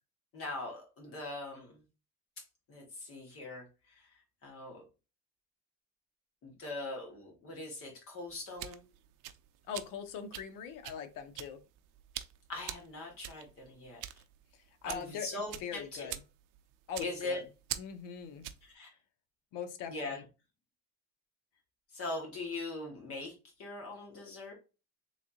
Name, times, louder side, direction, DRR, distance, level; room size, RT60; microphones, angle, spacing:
voice 1, 0.3-1.8 2.7-4.8 6.4-8.8 12.5-14.0 14.8-16.1 17.0-17.4 18.7-18.9 19.9-20.2 21.9-24.5, left 2 dB, 45° left, 0 dB, 1.7 m, -41 dB
sound 1, 8.3-18.7, right 13 dB, 80° right, 0.5 m, -45 dB
voice 2, 9.7-11.6 14.8-16.2 16.9-17.4 17.8-18.4 19.5-20.2, left 7 dB, 90° left, 8 dB, 0.7 m, -41 dB
3.6 x 3.2 x 2.6 m, 0.30 s
cardioid pair, 170°, 32 cm